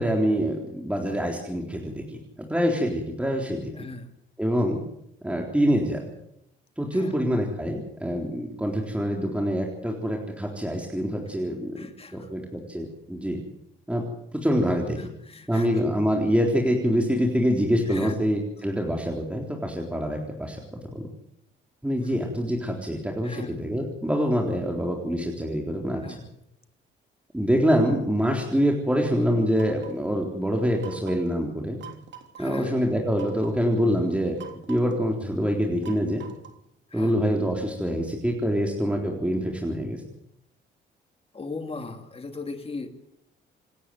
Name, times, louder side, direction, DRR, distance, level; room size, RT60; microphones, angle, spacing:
voice 1, 0.0-3.7 4.4-4.8 5.2-6.0 6.8-11.8 12.1-13.4 13.9-14.0 14.3-15.0 15.5-20.6 20.9-21.1 21.8-26.0 27.3-31.8 32.4-34.4 34.7-36.2 36.9-40.0, equal, 5° right, 1 dB, 3.8 m, -25 dB
voice 2, 3.7-4.1 6.9-7.2 11.8-12.3 15.0-15.8 17.9-18.2 23.2-23.6 26.0-26.3 32.4-32.8 36.9-37.1 41.3-42.9, left 3 dB, 30° left, 6 dB, 2.8 m, -38 dB
sound 1, 29.6-30.1 30.8-31.3 31.8-32.4 33.1-33.6 34.4-35.0 35.8-36.7, right 9 dB, 65° right, 3.4 m, -45 dB
27.0 x 10.0 x 9.4 m, 0.78 s
cardioid pair, 90°, 20 cm